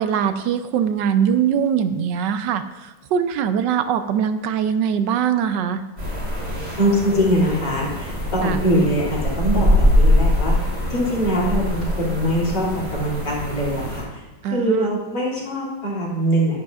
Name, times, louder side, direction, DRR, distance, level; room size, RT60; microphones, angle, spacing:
voice 1, 0.0-5.8 8.4-8.6 14.4-15.0, right 8 dB, 80° right, 10 dB, 1.3 m, -22 dB
sound 1, 6.0-14.0, left 1 dB, 40° right, 3.4 m, -22 dB
voice 2, 6.8-10.5 10.9-14.2 14.5-16.6, equal, 70° left, -6 dB, 3.2 m, -22 dB
10.0 x 10.0 x 2.4 m, 1.1 s
omnidirectional pair, 1.9 m